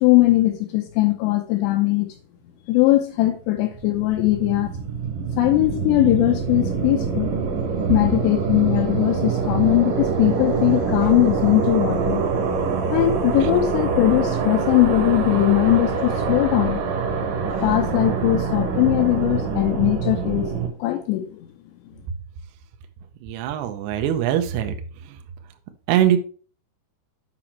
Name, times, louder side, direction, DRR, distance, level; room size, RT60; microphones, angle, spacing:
voice 1, 0.0-2.1 2.7-4.7 5.4-7.3 7.9-12.2 12.9-16.8 17.6-20.5 20.8-21.5, left 16 dB, 85° left, 2.5 m, -20 dB
sound 1, 3.6-20.7, right 5 dB, 65° right, 2.2 m, -25 dB
voice 2, 23.2-24.8 25.9-26.2, right 11 dB, 85° right, 2.4 m, -21 dB
7.8 x 5.0 x 4.3 m
omnidirectional pair, 5.7 m